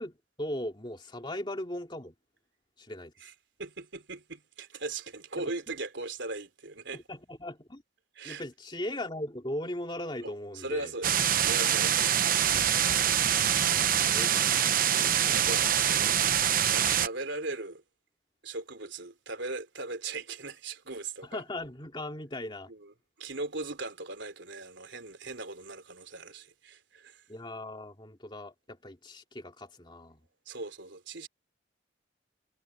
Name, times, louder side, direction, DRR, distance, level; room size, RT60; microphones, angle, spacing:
voice 1, 0.0-2.1 2.8-3.1 5.4-5.5 6.9-7.8 8.2-10.9 13.9-15.3 21.3-22.7 27.3-30.2, left 1 dB, 25° left, 2.5 m, -38 dB
voice 2, 3.6-7.0 8.1-8.4 10.2-12.5 14.9-16.2 16.7-17.8 18.4-21.4 22.7-22.9 23.2-27.2 30.4-31.3, right 3 dB, 75° right, 3.2 m, -39 dB
sound 1, 11.0-17.1, right 9 dB, 45° right, 0.9 m, -25 dB
head